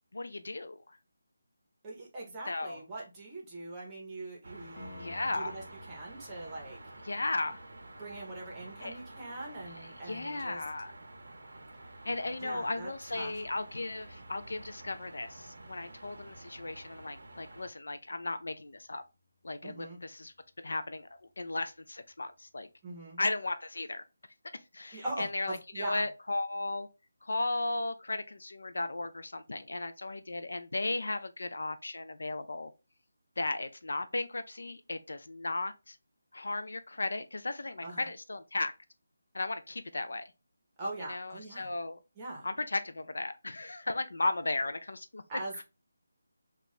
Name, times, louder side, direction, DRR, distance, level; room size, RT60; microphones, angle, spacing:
voice 1, 0.1-0.8 2.5-2.8 5.0-5.6 7.1-7.6 8.8-9.0 9.8-10.9 12.1-19.0 19.4-21.1 21.4-22.7 23.2-24.0 24.7-26.9 27.2-32.7 33.4-36.0 36.3-38.7 39.3-40.3 41.1-42.0 42.4-45.2, left 2 dB, 75° left, 0.4 m, -35 dB
voice 2, 1.8-5.1 5.3-6.8 8.0-10.6 12.4-13.3 19.6-20.0 22.8-23.2 24.9-26.1 37.8-38.1 40.8-41.7 42.2-42.5 45.3-45.6, right 2 dB, 15° right, 0.7 m, -42 dB
sound 1, 4.4-17.7, right 2 dB, 60° right, 0.6 m, -50 dB
Piano, 4.8-15.4 18.7-18.8, left 2 dB, 35° left, 1.2 m, -57 dB
2.4 x 2.2 x 3.9 m
figure-of-eight pair, 175°, 0 cm